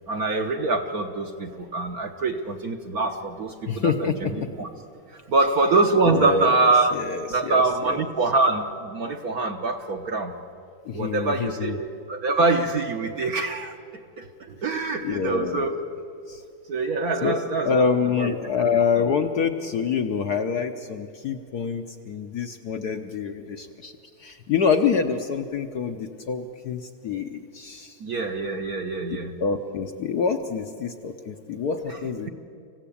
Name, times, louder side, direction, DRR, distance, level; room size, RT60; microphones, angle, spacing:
voice 1, 0.1-4.7 5.1-7.0 7.3-10.3 10.9-13.8 14.2-15.8 16.7-17.9 18.2-18.3 19.0-19.1 28.0-29.3 31.9-32.0, right 3 dB, 50° right, 5 dB, 1.2 m, -24 dB
voice 2, 3.7-4.5 6.1-6.6 6.9-8.0 10.9-11.7 15.0-15.7 16.3-16.4 17.2-17.4 17.6-23.9 24.2-28.0 29.4-32.3, left 6 dB, 60° left, 5 dB, 1.2 m, -26 dB
26.0 x 15.5 x 8.6 m, 2.4 s
omnidirectional pair, 2.4 m